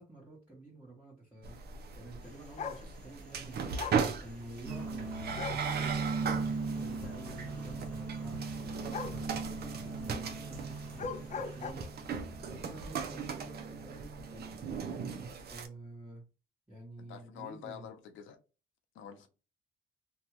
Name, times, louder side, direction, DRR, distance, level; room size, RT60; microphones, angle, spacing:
voice 1, 0.0-1.6 2.0-3.8 4.2-8.4 9.0-11.9 12.4-14.5 15.1-16.2 16.7-17.9, right 2 dB, 5° right, 1.2 m, -50 dB
sound 1, 1.4-15.7, right 6 dB, 55° right, 0.6 m, -39 dB
sound 2, 2.6-2.8 3.8-4.1 5.3-5.7 8.9-9.2 10.9-11.7, left 5 dB, 40° left, 0.4 m, -38 dB
sound 3, 4.6-14.9, right 4 dB, 70° right, 1.0 m, -39 dB
voice 2, 17.0-18.4 18.9-19.3, left 8 dB, 80° left, 0.6 m, -47 dB
2.6 x 2.3 x 3.0 m
cardioid pair, 90°, 20 cm